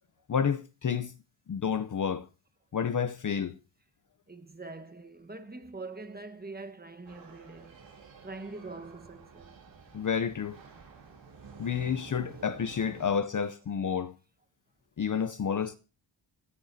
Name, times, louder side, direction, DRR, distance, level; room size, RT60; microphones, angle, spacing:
voice 1, 0.3-1.1 1.5-2.2 2.7-3.5 9.9-10.6 11.6-14.1 15.0-15.8, left 7 dB, 40° left, 0.6 m, -30 dB
voice 2, 4.3-7.8 8.2-9.6, right 3 dB, 20° right, 1.3 m, -44 dB
sound 1, 7.0-13.2, right 5 dB, 75° right, 6.9 m, -50 dB
27.0 x 10.0 x 2.7 m
cardioid pair, 90°, 47 cm